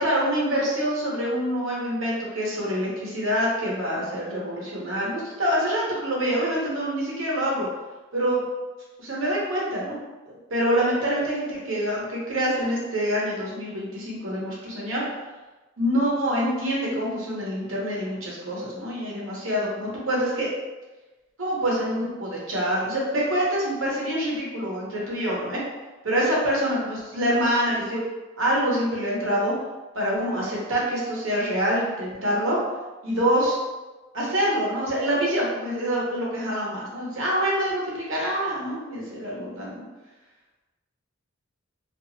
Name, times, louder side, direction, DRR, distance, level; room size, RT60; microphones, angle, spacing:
voice 1, 0.0-7.7 8.1-8.5 9.0-10.0 10.5-15.0 15.8-20.5 21.4-25.6 26.0-28.0 28.4-29.5 29.9-32.6 33.0-33.5 34.1-39.8, equal, 75° right, -4 dB, 0.9 m, -26 dB
2.8 x 2.5 x 2.6 m, 1.2 s
head